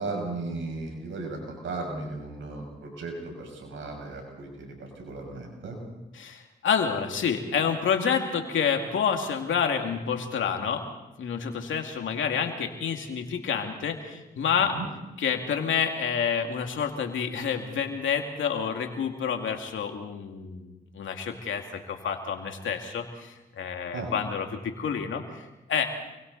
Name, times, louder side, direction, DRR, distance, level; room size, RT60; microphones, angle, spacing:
voice 1, 0.0-5.8 14.7-14.9 23.9-24.1, right 3 dB, 85° right, 2 dB, 6.2 m, -36 dB
voice 2, 6.1-10.8 11.2-14.8 15.2-26.0, left 7 dB, 85° left, 4 dB, 2.4 m, -28 dB
28.5 x 23.0 x 4.1 m, 0.99 s
supercardioid pair, 40°, 20 cm